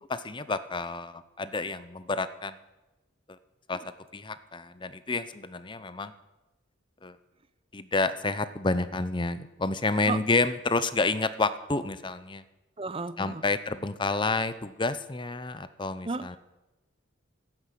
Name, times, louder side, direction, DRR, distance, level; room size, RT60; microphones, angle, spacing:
voice 1, 0.2-2.6 3.7-3.8 4.1-6.1 7.0-7.2 7.7-12.4 13.2-16.4, left 3 dB, 25° left, 13 dB, 0.7 m, -29 dB
voice 2, 12.8-13.4 16.0-16.4, right 3 dB, 30° right, 13 dB, 0.7 m, -33 dB
14.0 x 10.5 x 8.4 m, 1.0 s
head